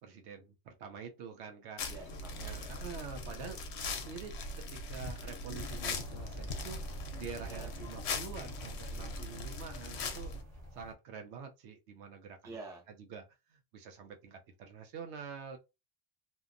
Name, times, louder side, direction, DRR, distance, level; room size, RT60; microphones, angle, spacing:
voice 1, 0.0-2.0 2.4-4.3 4.7-6.8 7.2-10.3 10.8-12.6 13.0-13.2 13.5-15.6, right 6 dB, 75° right, 0.9 m, -46 dB
sound 1, 1.8-10.4, left 3 dB, 75° left, 0.8 m, -40 dB
voice 2, 1.9-2.8 7.4-7.7 12.4-12.9, right 3 dB, 5° right, 0.5 m, -48 dB
sound 2, 5.5-10.9, equal, 35° right, 1.0 m, -47 dB
2.8 x 2.1 x 2.4 m
omnidirectional pair, 1.2 m